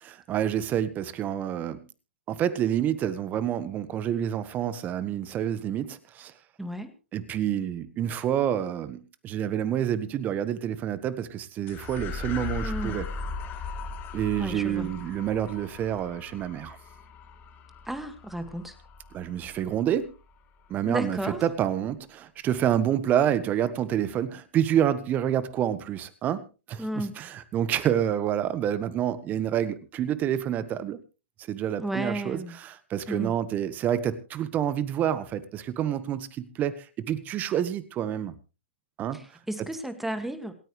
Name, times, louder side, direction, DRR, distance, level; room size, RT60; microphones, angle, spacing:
voice 1, 0.0-1.9 2.3-6.3 7.1-13.1 14.1-16.8 19.1-20.1 20.7-31.0 31.5-38.3 39.0-39.2, right 10 dB, 25° right, 15 dB, 1.4 m, -28 dB
voice 2, 6.6-6.9 12.6-13.0 14.4-14.9 17.9-18.8 20.8-21.4 26.8-27.2 31.8-32.5 33.1-33.4 39.1-40.5, right 1 dB, 5° right, 10 dB, 1.9 m, -33 dB
sound 1, 11.7-20.3, left 4 dB, 30° left, 3.0 m, -38 dB
27.5 x 9.1 x 3.2 m, 0.32 s
hypercardioid pair, 120°, 6 cm